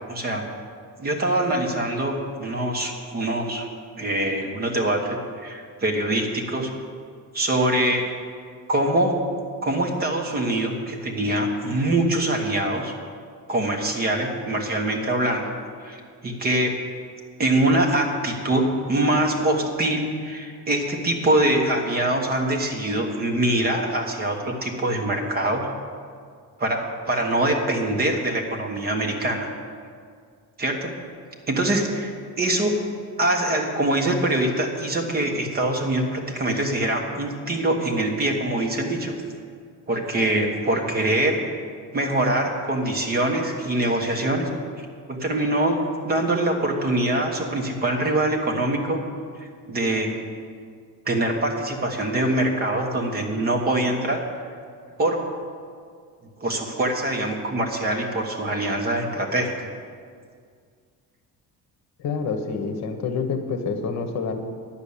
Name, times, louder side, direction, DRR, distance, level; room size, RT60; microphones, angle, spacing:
voice 1, 0.1-0.5 1.0-3.7 4.0-6.7 7.3-8.0 8.7-9.2 9.6-12.9 13.5-15.5 15.8-16.7 17.4-25.7 26.6-29.5 30.6-30.9 31.5-32.8 33.2-39.1 39.9-41.5 41.9-44.5 45.1-49.0 49.7-50.1 51.1-54.2 55.0-55.2 56.4-59.7, right 1 dB, 30° right, 2 dB, 1.3 m, -24 dB
voice 2, 62.0-64.3, left 5 dB, 55° left, 6 dB, 1.1 m, -27 dB
10.5 x 6.9 x 8.5 m, 2.1 s
cardioid pair, 170°, 33 cm